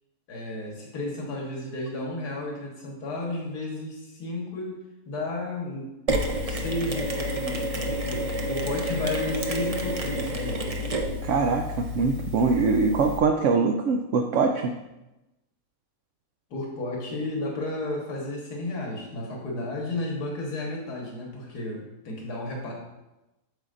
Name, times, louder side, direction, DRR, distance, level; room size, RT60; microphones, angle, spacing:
voice 1, 0.3-4.8 5.1-5.9 6.4-10.6 16.5-22.7, left 2 dB, 85° left, -2 dB, 2.0 m, -33 dB
Mechanisms, 6.1-13.2, equal, 45° right, 0.4 m, -30 dB
voice 2, 11.2-14.7, right 4 dB, 65° right, 3 dB, 0.8 m, -23 dB
9.0 x 7.1 x 2.5 m, 0.99 s
omnidirectional pair, 1.6 m